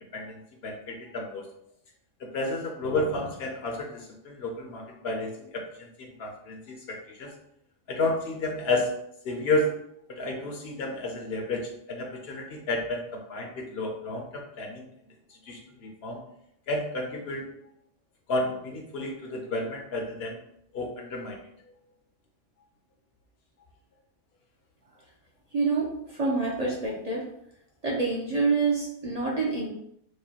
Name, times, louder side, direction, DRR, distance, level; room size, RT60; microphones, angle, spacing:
voice 1, 0.1-1.5 2.2-7.3 7.9-8.9 9.2-9.7 10.1-14.9 15.5-16.2 16.7-17.5 18.3-20.4 20.7-21.4, left 2 dB, 65° left, 2 dB, 0.8 m, -31 dB
voice 2, 25.5-27.3 27.8-29.7, right 4 dB, 45° right, -4 dB, 0.6 m, -27 dB
4.8 x 2.2 x 2.8 m, 0.73 s
omnidirectional pair, 1.2 m